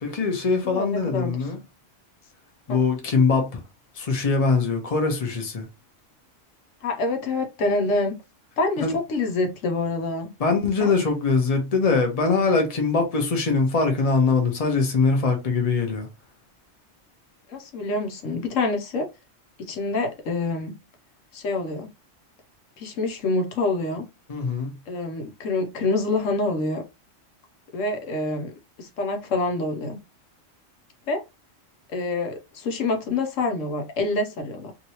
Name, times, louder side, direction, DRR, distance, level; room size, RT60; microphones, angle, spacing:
voice 1, 0.0-1.6 2.7-3.6 4.0-5.7 8.8-8.9 10.4-16.1 24.3-24.7, left 4 dB, 35° left, 0.8 m, -22 dB
voice 2, 0.6-1.4 2.7-2.8 6.8-8.1 8.6-10.3 10.8-10.9 17.5-19.1 19.6-20.7 21.3-21.9 22.8-24.1 24.9-26.8 27.7-28.5 28.8-30.0 31.1-31.2 31.9-34.7, left 3 dB, 80° left, 1.1 m, -26 dB
2.9 x 2.8 x 2.8 m
omnidirectional pair, 1.3 m